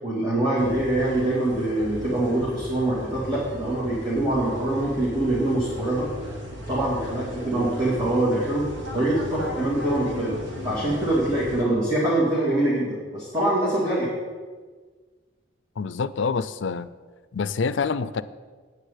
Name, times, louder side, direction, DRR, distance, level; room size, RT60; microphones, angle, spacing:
voice 1, 0.0-6.1 6.7-8.6 8.9-10.3 10.6-14.1, right 1 dB, 20° right, -8 dB, 2.4 m, -24 dB
sound 1, 0.6-11.6, equal, 65° right, 2.0 m, -36 dB
voice 2, 15.8-16.9 17.3-18.2, left 5 dB, 65° left, 15 dB, 0.5 m, -26 dB
9.1 x 6.7 x 8.3 m, 1.5 s
head